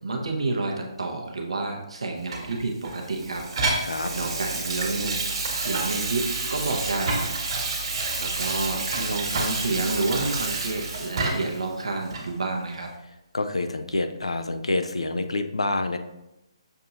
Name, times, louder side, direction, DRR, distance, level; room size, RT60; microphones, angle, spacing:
voice 1, 0.0-3.5 4.1-5.2 5.6-7.3 8.2-12.9, right 3 dB, 80° right, 1 dB, 0.9 m, -29 dB
Water tap faucet / Sink (filling or washing), 2.3-11.6 12.1-12.3, right 3 dB, 60° right, 1.5 m, -29 dB
voice 2, 13.3-16.0, left 2 dB, 85° left, 8 dB, 0.4 m, -27 dB
6.7 x 2.8 x 2.5 m, 0.91 s
figure-of-eight pair, 145°, 3 cm